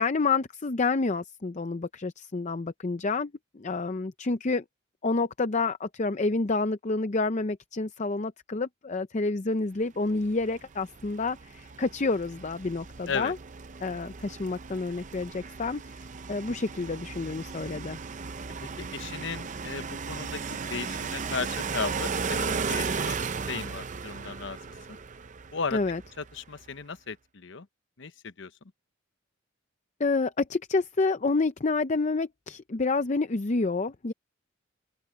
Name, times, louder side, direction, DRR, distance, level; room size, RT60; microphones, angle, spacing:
voice 1, 0.0-4.6 5.0-13.4 13.8-15.8 16.3-18.0 25.7-26.0 30.0-34.1, left 3 dB, 35° left, 0.6 m, -28 dB
sound 1, 10.2-26.4, right 5 dB, 35° right, 0.6 m, -36 dB
voice 2, 18.6-23.2 23.5-24.6 24.9-25.0 25.5-25.8 26.2-27.7 28.0-28.5, left 5 dB, 60° left, 0.9 m, -36 dB
head